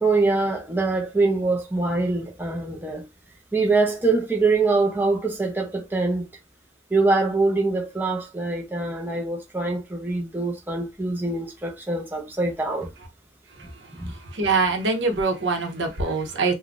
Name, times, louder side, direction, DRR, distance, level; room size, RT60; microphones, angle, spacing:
voice 1, 0.0-3.1 3.5-6.3 6.9-12.9 14.0-14.1, right 3 dB, 10° right, 0.7 m, -24 dB
voice 2, 14.3-16.5, right 3 dB, 75° right, 0.9 m, -23 dB
3.5 x 2.2 x 2.5 m
head